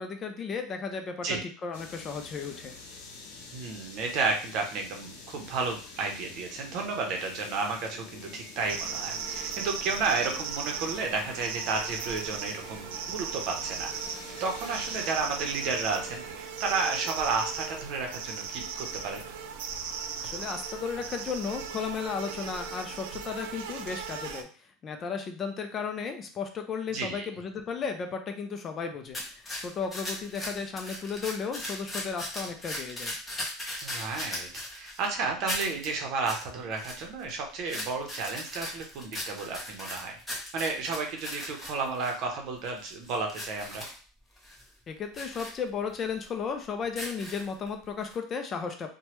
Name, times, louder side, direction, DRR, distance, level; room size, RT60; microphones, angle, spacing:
voice 1, 0.0-2.7 20.2-24.5 24.8-33.1 44.9-48.9, left 5 dB, 30° left, 5 dB, 0.4 m, -34 dB
sound 1, 1.7-16.4, left 3 dB, 80° left, 0.7 m, -47 dB
voice 2, 3.5-13.9 14.4-19.2 26.9-27.3 33.8-34.5 34.7-40.2 40.5-43.9, right 4 dB, 55° right, 3 dB, 0.7 m, -32 dB
sound 2, 8.6-24.4, right 6 dB, 90° right, 0.4 m, -37 dB
sound 3, 29.1-35.1 35.5-35.9 36.2-36.4 36.7-37.3 37.7-42.2 42.6-44.0 44.4-44.6 45.1-45.5 46.0-46.1 46.8-47.7 48.1-48.2, left 1 dB, 10° left, 0.8 m, -38 dB
3.1 x 2.2 x 2.9 m, 0.40 s
supercardioid pair, 140°, 0 cm